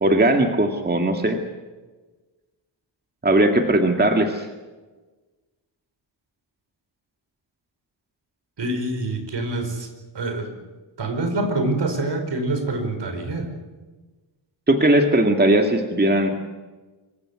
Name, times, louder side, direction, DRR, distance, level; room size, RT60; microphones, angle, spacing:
voice 1, 0.0-1.4 3.2-4.5 14.7-16.3, right 1 dB, 20° right, 4 dB, 2.0 m, -18 dB
voice 2, 8.6-9.9 10.1-10.6 11.0-13.5, right 2 dB, 60° right, 7 dB, 5.0 m, -26 dB
26.0 x 15.5 x 9.7 m, 1.3 s
cardioid pair, 95°, 48 cm